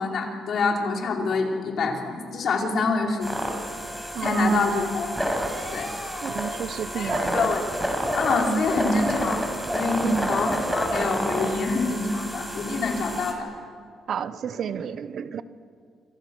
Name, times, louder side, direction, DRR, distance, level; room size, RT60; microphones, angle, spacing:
voice 1, 0.0-3.3 4.2-5.1 5.7-5.9 6.9-7.7 8.1-9.4 9.7-13.5, left 3 dB, 60° left, 0 dB, 5.1 m, -26 dB
sound 1, 3.2-13.3, equal, ahead, 6.2 m, -29 dB
voice 2, 4.1-4.8 6.2-7.5 10.0-10.4 14.1-15.4, right 8 dB, 60° right, 13 dB, 1.1 m, -31 dB
28.5 x 26.5 x 6.5 m, 2.1 s
cardioid pair, 90°, 0 cm